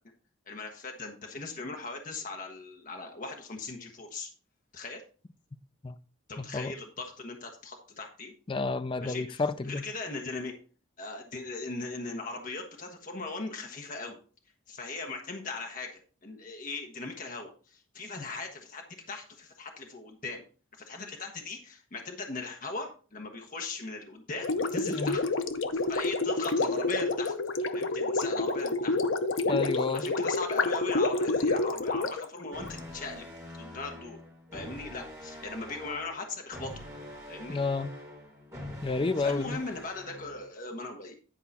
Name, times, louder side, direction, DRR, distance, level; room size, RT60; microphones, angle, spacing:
voice 1, 0.5-4.3 4.7-5.0 6.3-8.3 9.0-10.5 11.0-14.2 14.7-20.4 20.9-25.2 25.7-27.3 27.7-29.0 29.5-33.3 33.5-34.2 34.5-36.7 37.3-37.6 39.2-41.1, left 3 dB, 40° left, 1.1 m, -39 dB
voice 2, 8.5-9.8 24.9-25.2 29.5-30.1 37.5-37.9 38.8-39.6, left 3 dB, 25° left, 0.4 m, -30 dB
Gurgling, 24.4-32.8, left 3 dB, 70° left, 0.7 m, -29 dB
sound 1, 32.5-40.5, left 1 dB, 15° right, 3.2 m, -45 dB
10.0 x 4.8 x 4.1 m
head